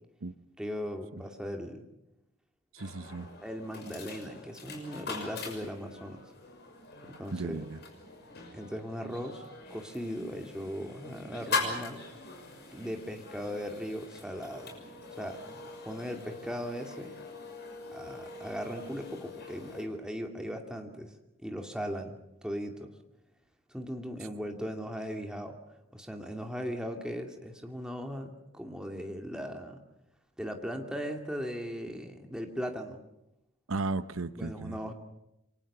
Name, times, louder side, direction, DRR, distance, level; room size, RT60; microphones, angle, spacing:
voice 1, 0.6-1.8 3.4-6.2 7.0-7.6 8.5-9.4 9.7-12.0 12.7-14.7 15.1-15.4 15.8-17.2 17.9-21.1 21.4-22.9 23.7-25.6 25.9-29.8 30.4-33.0 34.4-34.9, equal, 5° right, 3 dB, 2.4 m, -38 dB
voice 2, 2.7-3.3 7.3-7.8 33.7-34.8, right 3 dB, 75° right, 13 dB, 0.9 m, -35 dB
sound 1, 2.8-19.8, left 3 dB, 50° left, 6.3 m, -42 dB
28.0 x 24.0 x 6.9 m, 0.87 s
head